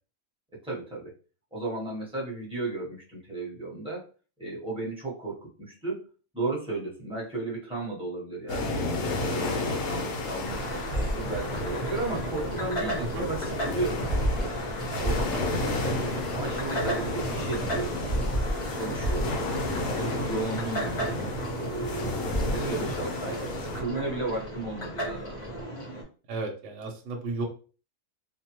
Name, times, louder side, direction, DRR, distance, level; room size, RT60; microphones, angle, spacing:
voice 1, 0.6-1.1 1.5-4.0 4.4-6.1 6.3-14.5 14.9-15.6 16.3-18.0 18.4-19.4 19.9-21.2 21.6-25.4, right 2 dB, 5° right, -6 dB, 0.8 m, -34 dB
sound 1, 8.5-23.8, left 2 dB, 85° left, 1.1 m, -33 dB
sound 2, 10.4-26.0, right 1 dB, 30° left, 0.7 m, -32 dB
voice 2, 20.0-20.3 26.3-27.4, right 2 dB, 60° right, 2 dB, 0.9 m, -34 dB
2.6 x 2.1 x 2.9 m, 0.37 s
omnidirectional pair, 1.5 m